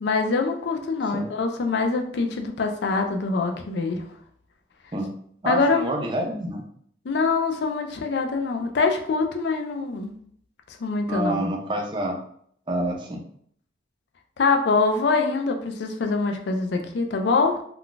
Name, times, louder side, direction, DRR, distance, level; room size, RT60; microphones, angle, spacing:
voice 1, 0.0-4.0 5.5-5.8 7.1-10.1 10.8-11.4 14.4-17.6, left 4 dB, 65° left, 4 dB, 0.4 m, -24 dB
voice 2, 5.4-6.6 11.1-12.2 12.7-13.2, right 1 dB, 25° right, 1 dB, 0.5 m, -27 dB
2.3 x 2.3 x 3.7 m, 0.65 s
head